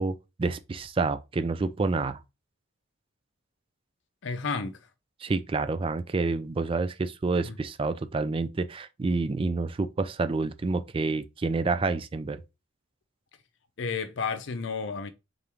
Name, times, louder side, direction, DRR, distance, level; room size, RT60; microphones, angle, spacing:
voice 1, 0.0-2.2 5.2-12.4, right 3 dB, 25° right, 0.3 m, -28 dB
voice 2, 4.2-4.8 7.4-7.6 13.8-15.1, left 5 dB, 60° left, 0.6 m, -31 dB
3.8 x 3.0 x 3.5 m
head